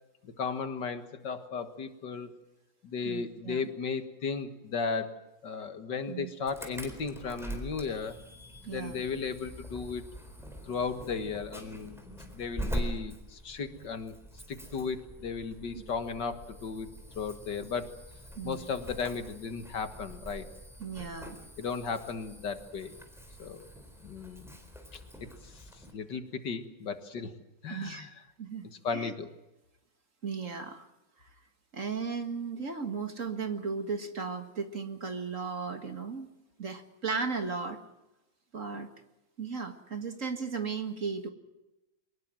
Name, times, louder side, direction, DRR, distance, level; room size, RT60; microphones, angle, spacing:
voice 1, 0.2-2.3 2.8-8.2 8.7-10.0 10.7-12.0 12.3-14.2 14.5-16.9 17.2-18.0 18.4-20.5 21.6-22.9 23.4-23.7 24.0-24.5 24.9-25.0 25.4-25.6 25.9-27.3 27.6-28.1 28.8-29.3, left 5 dB, 65° left, 9 dB, 2.2 m, -35 dB
voice 2, 3.0-3.7 6.1-6.3 8.6-9.0 15.8-15.9 18.4-18.7 20.8-21.4 27.7-28.1 28.4-28.7 28.9-29.1 30.2-30.9 31.2-31.3 31.7-36.3 36.6-37.8 38.5-38.9 39.4-41.3, right 5 dB, 40° right, 7 dB, 2.0 m, -36 dB
Insect / Alarm, 6.5-25.9, right 1 dB, ahead, 4.0 m, -43 dB
24.0 x 19.5 x 7.6 m, 0.96 s
omnidirectional pair, 2.1 m